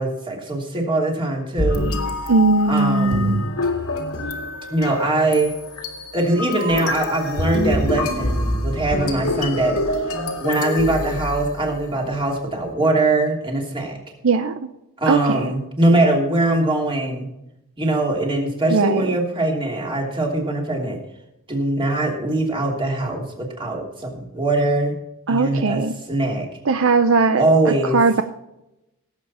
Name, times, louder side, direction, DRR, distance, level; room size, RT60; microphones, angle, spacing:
voice 1, 0.0-1.9 2.7-3.5 4.7-5.5 6.1-10.1 10.4-14.0 15.0-17.3 17.8-21.0 21.5-24.9 25.3-26.5 27.4-28.0, right 2 dB, 25° right, 0 dB, 3.0 m, -22 dB
sound 1, 1.6-11.9, left 1 dB, 85° left, 2.0 m, -25 dB
voice 2, 2.3-3.4 14.2-14.5 15.1-15.5 18.7-19.0 25.3-25.9 26.7-28.2, right 4 dB, 65° right, 9 dB, 0.6 m, -19 dB
17.5 x 8.0 x 4.3 m, 0.89 s
head